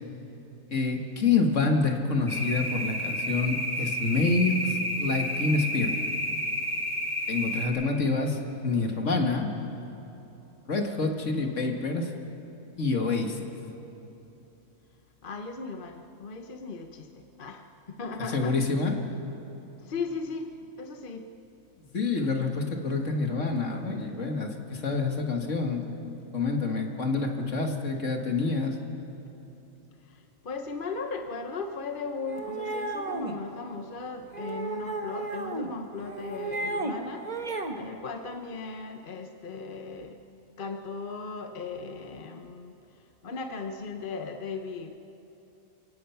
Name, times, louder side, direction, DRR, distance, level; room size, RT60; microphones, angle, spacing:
voice 1, 0.7-5.9 7.3-9.5 10.7-12.1 12.8-13.5 18.3-19.0 21.9-28.8, left 3 dB, 60° left, 3 dB, 2.2 m, -27 dB
sound 1, 2.3-7.6, left 1 dB, 5° right, 2.8 m, -31 dB
voice 2, 15.2-17.1 17.4-18.5 19.9-20.5 20.8-21.3 30.4-37.3 37.8-40.2 40.6-42.7 43.2-45.0, left 4 dB, 40° left, 5 dB, 1.0 m, -37 dB
sound 2, 32.3-33.4 34.3-35.7 36.0-36.9 37.2-37.8, right 2 dB, 30° right, 1.3 m, -33 dB
28.5 x 17.0 x 5.8 m, 3.0 s
omnidirectional pair, 1.4 m